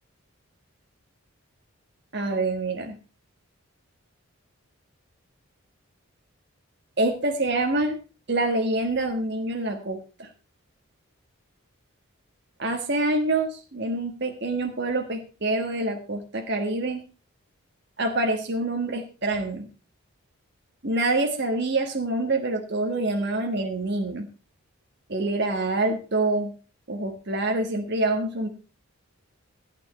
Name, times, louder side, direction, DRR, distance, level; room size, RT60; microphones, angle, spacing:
voice 1, 2.1-3.0 7.0-8.0 8.3-10.3 12.6-17.0 18.0-19.7 20.8-24.3 25.1-26.5 26.9-28.5, right 2 dB, 50° right, 3 dB, 1.5 m, -26 dB
15.0 x 9.2 x 4.2 m, 0.32 s
head